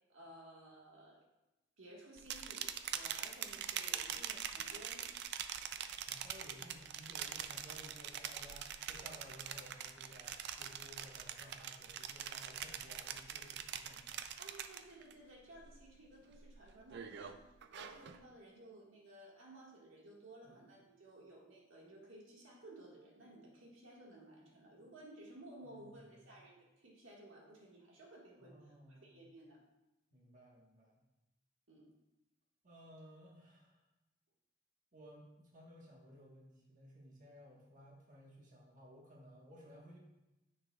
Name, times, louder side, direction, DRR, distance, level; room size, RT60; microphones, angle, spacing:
voice 1, 0.1-1.2 1.8-5.1 14.4-17.4 17.7-28.5 28.9-29.6 31.7-31.9, right 1 dB, 85° right, -2 dB, 1.7 m, -56 dB
sound 1, 2.2-15.1 15.5-15.9 16.3-18.2, right 9 dB, 60° right, 0.4 m, -44 dB
voice 2, 6.0-14.2 20.4-20.5 25.6-25.9 26.2-26.3 28.4-29.2 30.1-31.0 32.6-33.8 34.9-40.0, equal, 40° right, -2 dB, 1.4 m, -57 dB
9.8 x 6.6 x 2.4 m, 0.99 s
head